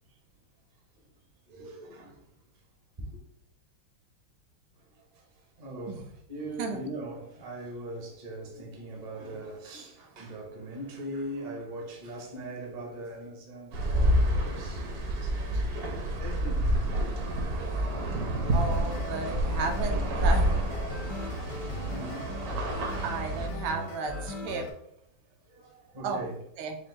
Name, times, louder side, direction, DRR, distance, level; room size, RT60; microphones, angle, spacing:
voice 1, 1.4-2.6 3.0-3.2 4.7-16.6 18.1-18.3 19.1-19.4 20.9-22.3 23.6-24.3 25.2-26.4, right 1 dB, 45° right, 0.5 m, -42 dB
sound 1, 13.7-23.5, right 1 dB, 60° right, 1.1 m, -28 dB
sound 2, 18.4-24.7, left 2 dB, 70° left, 0.8 m, -39 dB
voice 2, 18.5-20.5 23.0-24.7 26.0-26.2 26.6-26.8, right 4 dB, 75° right, 1.3 m, -33 dB
5.1 x 2.1 x 3.7 m
omnidirectional pair, 2.3 m